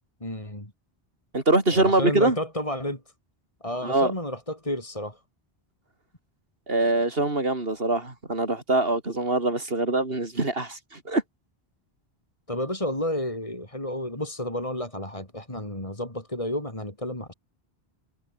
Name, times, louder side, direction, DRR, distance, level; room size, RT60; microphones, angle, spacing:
voice 1, 0.2-0.7 1.7-3.0 3.6-5.2 12.5-17.3, left 1 dB, 30° left, 5.1 m, -31 dB
voice 2, 1.3-2.4 3.8-4.1 6.7-11.2, right 2 dB, 65° right, 4.7 m, -24 dB
omnidirectional pair, 1.1 m